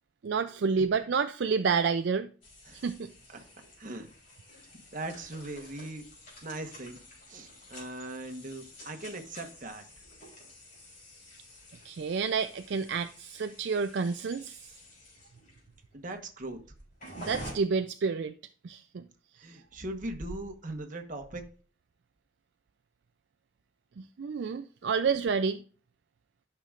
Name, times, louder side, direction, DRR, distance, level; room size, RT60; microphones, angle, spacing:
voice 1, 0.2-2.3 2.7-3.1 11.8-14.7 17.2-18.3 18.6-19.1 24.0-25.6, right 5 dB, 60° right, 0.4 m, -29 dB
sound 1, 2.4-17.5, equal, 45° left, 3.7 m, -50 dB
voice 2, 3.8-4.1 4.9-6.1 6.4-7.0 7.3-9.9 15.9-16.6 19.4-21.5, right 2 dB, 40° right, 1.2 m, -40 dB
12.0 x 5.9 x 2.5 m
head